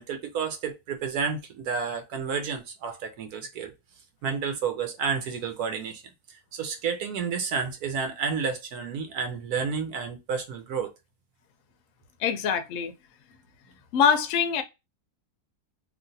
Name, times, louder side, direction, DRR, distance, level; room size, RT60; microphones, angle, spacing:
voice 1, 0.0-3.7 4.2-6.0 6.5-10.9, right 6 dB, 80° right, 1.2 m, -30 dB
voice 2, 12.2-12.9 13.9-14.6, left 7 dB, 70° left, 0.9 m, -23 dB
3.2 x 2.6 x 2.6 m
omnidirectional pair, 1.6 m